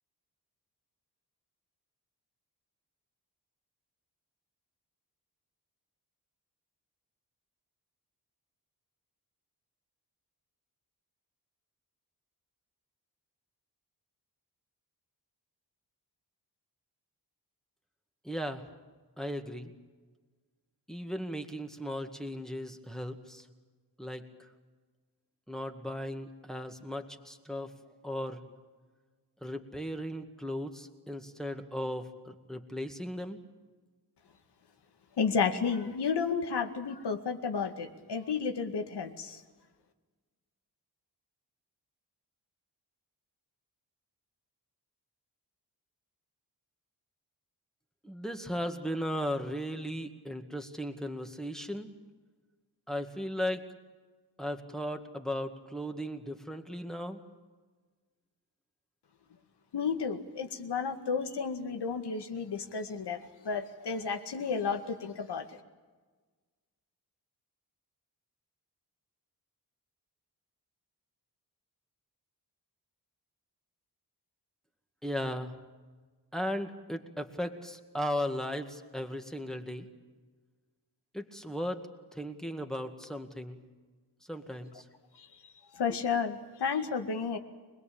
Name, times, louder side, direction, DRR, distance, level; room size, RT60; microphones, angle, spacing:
voice 1, 18.2-18.6 19.2-19.7 20.9-23.5 24.0-24.2 25.5-27.7 28.0-28.4 29.4-33.4 48.0-51.9 52.9-53.6 54.4-57.2 75.0-75.6 76.3-79.9 81.1-81.8 82.1-83.6 84.3-84.9, equal, ahead, 4 dB, 2.0 m, -36 dB
voice 2, 35.2-39.4 59.7-63.2 63.4-65.4 85.7-87.4, left 5 dB, 85° left, 6 dB, 2.2 m, -32 dB
25.5 x 20.5 x 8.7 m, 1.4 s
wide cardioid pair, 130°, 39 cm